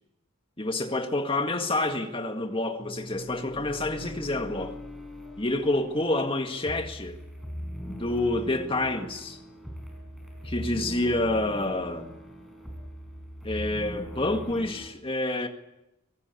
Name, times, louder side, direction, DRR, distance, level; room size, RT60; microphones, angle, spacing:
voice 1, 0.6-4.8 5.4-7.2 7.9-9.4 10.4-12.1 13.4-15.5, left 2 dB, 25° left, 1.9 m, -28 dB
sound 1, 2.8-14.9, equal, ahead, 5.1 m, -40 dB
24.5 x 17.5 x 8.4 m
head